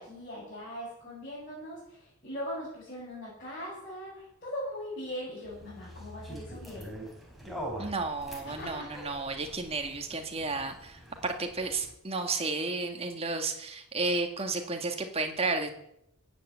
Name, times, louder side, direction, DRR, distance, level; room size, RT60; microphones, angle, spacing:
voice 1, 0.0-6.9 8.4-8.9, equal, 40° left, -8 dB, 7.2 m, -40 dB
sound 1, 5.4-11.9, equal, ahead, 3.8 m, -44 dB
voice 2, 7.8-15.7, right 3 dB, 25° right, 4 dB, 1.8 m, -32 dB
16.0 x 8.8 x 8.0 m, 0.77 s
head